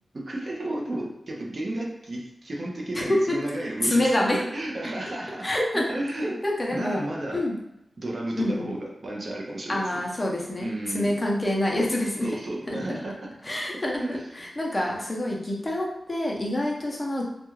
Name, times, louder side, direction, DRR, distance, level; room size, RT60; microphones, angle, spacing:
voice 1, 0.3-5.5 5.7-6.4 6.7-7.4 8.0-9.8 10.6-11.2 12.2-13.1 14.0-14.2, right 1 dB, 50° right, -2 dB, 0.6 m, -32 dB
voice 2, 2.9-3.4 3.8-4.4 5.4-5.8 6.4-7.1 7.3-7.5 8.4-8.7 9.7-12.4 12.7-12.8 13.4-17.2, left 1 dB, 25° left, -2 dB, 0.6 m, -26 dB
2.4 x 2.2 x 3.0 m, 0.84 s
wide cardioid pair, 110°, 0 cm